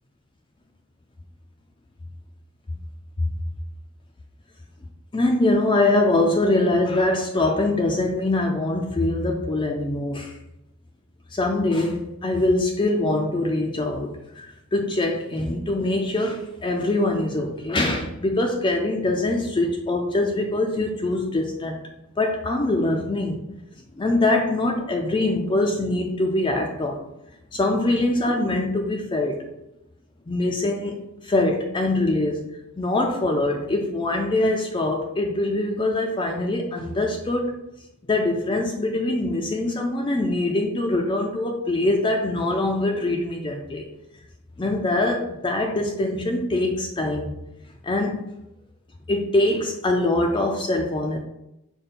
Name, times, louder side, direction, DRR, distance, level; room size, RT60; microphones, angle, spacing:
voice 1, 5.1-10.3 11.3-21.8 22.2-23.4 24.0-27.0 27.5-29.5 30.3-32.4 32.8-37.6 38.1-43.8 44.6-47.3 47.8-48.2 49.1-51.2, left 2 dB, 20° left, 2 dB, 0.3 m, -23 dB
5.1 x 2.2 x 4.1 m, 0.87 s
head